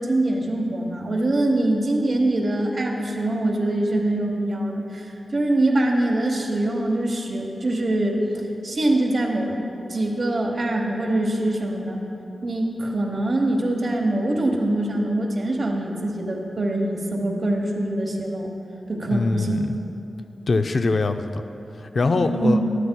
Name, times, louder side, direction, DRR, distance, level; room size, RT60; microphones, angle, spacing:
voice 1, 0.0-8.2 8.6-9.6 9.9-12.0 12.4-18.5 18.9-19.7 22.2-22.7, right 1 dB, 55° right, -1 dB, 1.1 m, -23 dB
voice 2, 19.1-19.8 20.5-21.4 21.8-22.6, left 3 dB, 55° left, 7 dB, 0.4 m, -23 dB
12.5 x 12.0 x 2.3 m, 3.0 s
wide cardioid pair, 85°, 0 cm